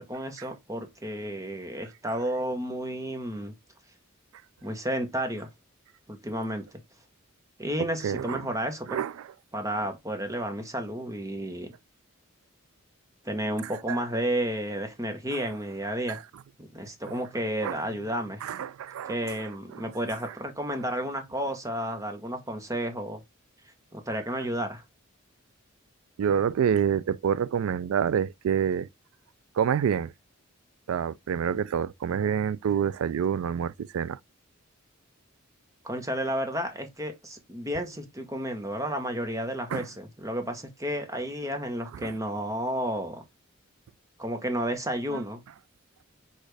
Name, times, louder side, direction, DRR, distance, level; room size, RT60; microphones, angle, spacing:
voice 1, 0.0-3.5 4.6-5.5 6.1-6.7 7.6-9.0 9.5-11.7 13.2-16.2 16.6-18.4 19.1-23.2 23.9-24.8 35.8-43.2 44.2-45.4, right 1 dB, 15° right, 1.0 m, -32 dB
voice 2, 8.0-8.4 8.9-9.3 13.6-14.0 16.1-16.2 17.1-17.2 17.6-17.8 18.4-19.4 19.7-19.8 26.2-28.9 29.6-30.1 30.9-34.2 39.7-39.9 42.0-42.1 45.1-45.2, right 8 dB, 85° right, 0.3 m, -27 dB
6.2 x 2.5 x 3.3 m
head